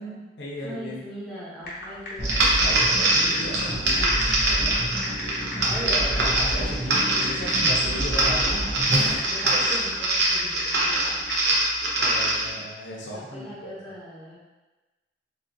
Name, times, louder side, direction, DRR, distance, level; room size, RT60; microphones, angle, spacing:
voice 1, 0.0-1.0 2.3-4.1 4.4-4.8 5.6-8.8 9.1-9.6 12.0-13.8, equal, 85° left, -3 dB, 0.6 m, -36 dB
voice 2, 0.6-2.4 5.6-6.7 9.2-11.3 13.1-14.4, equal, ahead, -11 dB, 0.9 m, -39 dB
sound 1, 1.6-11.6, left 1 dB, 55° left, 0.9 m, -38 dB
sound 2, 2.2-9.2, right 1 dB, 40° right, 0.6 m, -30 dB
sound 3, 2.2-12.5, right 1 dB, 75° right, 0.7 m, -23 dB
3.5 x 2.4 x 2.6 m, 1.1 s
head